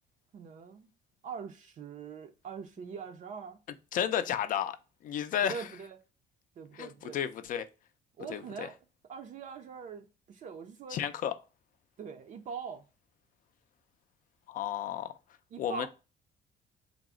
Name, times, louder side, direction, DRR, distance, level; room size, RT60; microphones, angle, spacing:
voice 1, 0.3-0.9 1.2-3.6 5.4-6.0 6.6-7.2 8.2-8.7 9.1-11.0 12.0-12.8 15.5-15.9, right 6 dB, 50° right, 0.5 m, -42 dB
voice 2, 3.9-4.8 5.0-5.7 6.7-7.7 8.3-8.7 10.9-11.4 14.5-15.2 15.6-15.9, left 9 dB, 55° left, 0.4 m, -32 dB
3.4 x 2.0 x 3.5 m
cardioid pair, 110°, 17 cm